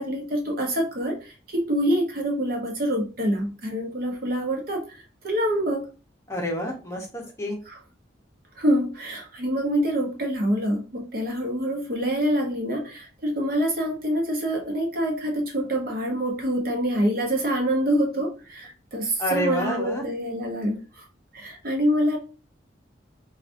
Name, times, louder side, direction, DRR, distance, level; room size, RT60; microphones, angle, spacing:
voice 1, 0.0-5.8 7.7-7.8 8.6-21.0 21.3-22.2, equal, 50° right, 2 dB, 0.9 m, -26 dB
voice 2, 6.3-7.6 19.2-20.1, equal, 15° left, 0 dB, 0.8 m, -28 dB
4.8 x 2.4 x 2.5 m, 0.34 s
head